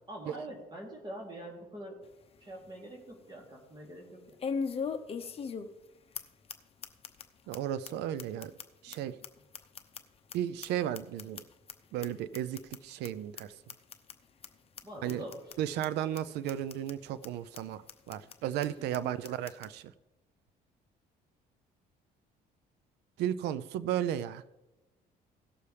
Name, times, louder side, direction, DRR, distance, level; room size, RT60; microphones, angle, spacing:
voice 1, 0.1-2.0 2.4-4.4 14.8-15.5 18.8-19.4, right 1 dB, 25° right, -2 dB, 2.9 m, -45 dB
sound 1, 2.0-2.1 2.6-2.7 4.4-5.9 6.1-6.2 6.5-6.6 6.8-7.2 7.5-7.6 7.8-7.9 8.2-10.3 10.6-11.7 12.0-12.1 12.3-12.8 13.0-13.1 13.4-13.5 13.7-14.1 14.4-14.5 14.8-14.9 15.1-15.5 15.8-15.9 16.2-16.3 16.5-16.9 17.2-17.3 17.5-17.6 17.9-18.3 18.6-18.7 18.9-19.0 19.2-19.7, left 5 dB, 35° left, 0.8 m, -38 dB
voice 2, 7.5-8.5 8.8-9.2 10.3-11.4 11.9-13.5 15.0-15.2 15.6-19.9 23.2-24.6, right 11 dB, 85° right, 15 dB, 0.5 m, -34 dB
17.5 x 6.9 x 3.3 m, 1.0 s
cardioid pair, 110°, 17 cm